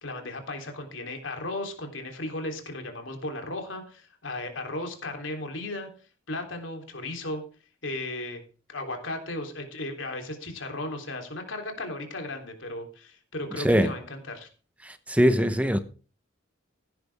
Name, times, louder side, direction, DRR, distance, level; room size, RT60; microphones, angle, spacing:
voice 1, 0.0-5.9 6.3-7.4 7.8-8.4 8.7-14.5, left 2 dB, 75° left, 3.5 m, -35 dB
voice 2, 13.6-13.9 14.8-15.8, equal, 5° right, 0.9 m, -22 dB
16.5 x 10.5 x 3.6 m
head